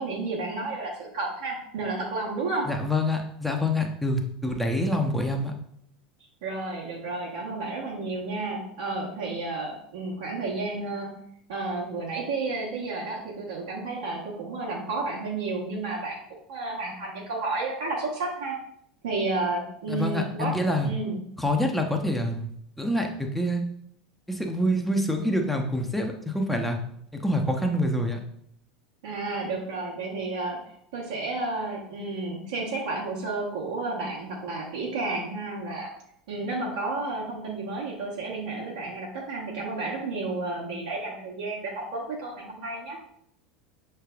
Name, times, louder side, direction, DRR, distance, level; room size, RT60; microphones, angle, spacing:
voice 1, 0.0-2.7 6.4-11.1 11.5-16.2 16.5-18.5 19.0-20.5 20.8-21.2 29.0-30.6 30.9-35.9 36.3-43.0, right 3 dB, 70° right, -4 dB, 1.2 m, -31 dB
voice 2, 2.7-5.5 19.9-20.9 21.4-22.5 22.8-23.6 24.3-26.8 27.1-28.2, left 1 dB, 5° left, 2 dB, 0.8 m, -26 dB
6.4 x 3.3 x 2.4 m, 0.70 s
figure-of-eight pair, 80°, 4 cm